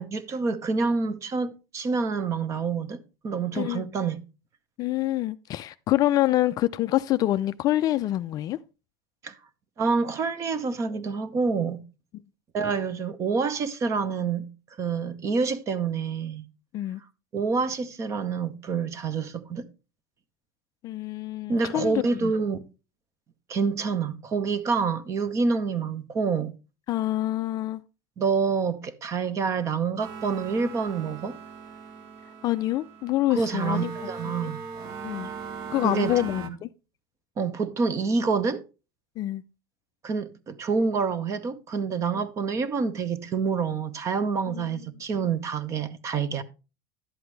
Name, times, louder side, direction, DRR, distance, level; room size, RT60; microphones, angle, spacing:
voice 1, 0.0-4.2 9.2-9.3 9.8-11.8 12.5-14.5 14.8-16.4 17.3-19.7 21.5-22.6 23.5-26.5 28.2-31.4 33.3-34.6 35.8-36.2 37.4-38.6 40.0-46.4, right 5 dB, 25° right, 0.8 m, -27 dB
voice 2, 3.5-3.9 4.8-8.6 16.7-17.0 20.8-22.3 26.9-27.8 32.4-33.9 34.4-34.5 35.0-35.3 35.7-36.7 39.2-39.4 44.5-44.8, left 15 dB, 35° left, 0.4 m, -26 dB
sound 1, 30.0-36.5, right 6 dB, 50° right, 1.1 m, -39 dB
11.0 x 7.9 x 3.2 m
supercardioid pair, 145°, 11 cm